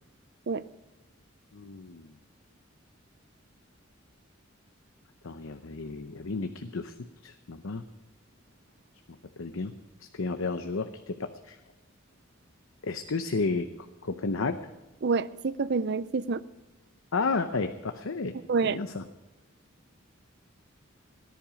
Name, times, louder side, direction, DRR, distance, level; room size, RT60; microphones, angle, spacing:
voice 1, 1.5-2.1 5.2-6.9 7.2-7.8 9.4-9.7 10.1-11.6 12.8-13.7 14.0-14.6 17.1-18.3 18.6-19.0, left 4 dB, 80° left, 8 dB, 0.7 m, -32 dB
voice 2, 15.0-16.4 18.5-18.8, right 4 dB, 55° right, 16 dB, 0.5 m, -27 dB
18.0 x 10.5 x 5.2 m, 1.1 s
head